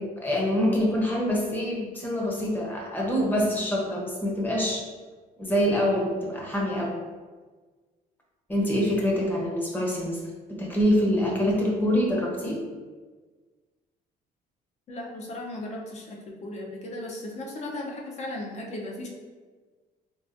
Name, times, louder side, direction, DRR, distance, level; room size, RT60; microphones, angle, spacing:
voice 1, 0.2-4.8 5.4-7.0 8.5-10.2 10.5-12.6, equal, 10° left, -3 dB, 0.8 m, -25 dB
voice 2, 14.9-19.1, left 1 dB, 40° left, -1 dB, 0.7 m, -36 dB
3.8 x 2.4 x 2.6 m, 1.4 s
cardioid pair, 110°, 17 cm